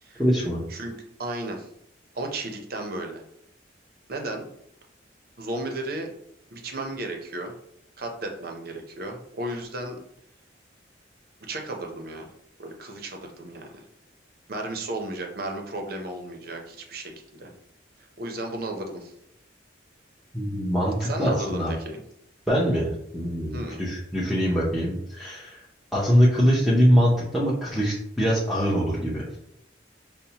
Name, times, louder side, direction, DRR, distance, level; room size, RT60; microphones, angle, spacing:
voice 1, 0.2-0.6 20.3-21.7 22.5-25.6 25.9-29.2, equal, ahead, -7 dB, 0.6 m, -23 dB
voice 2, 1.2-1.7 2.1-3.2 4.1-4.5 5.4-6.1 6.5-7.5 8.0-10.0 11.5-12.3 12.6-13.8 14.5-17.5 18.2-19.1 21.0-22.0 23.5-23.8, right 1 dB, 50° right, 2 dB, 0.6 m, -34 dB
5.4 x 2.1 x 2.8 m, 0.74 s
head